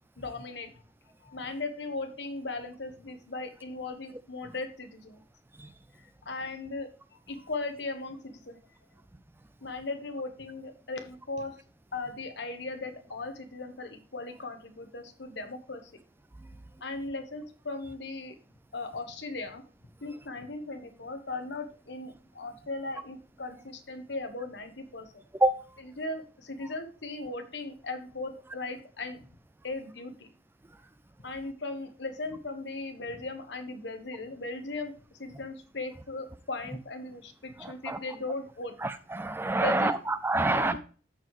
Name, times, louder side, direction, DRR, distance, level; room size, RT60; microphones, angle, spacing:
voice 1, 0.2-0.7 1.2-5.2 6.2-6.9 7.3-8.6 9.6-11.6 11.9-15.9 16.8-18.4 18.7-19.6 20.0-25.1 25.8-29.2 29.6-30.3 31.2-34.9 35.2-38.7 39.6-40.0 40.4-40.8, left 3 dB, 65° left, 6 dB, 1.3 m, -38 dB
voice 2, 37.6-38.0 38.8-40.8, right 2 dB, 10° right, 12 dB, 0.4 m, -27 dB
13.0 x 4.6 x 3.1 m, 0.38 s
head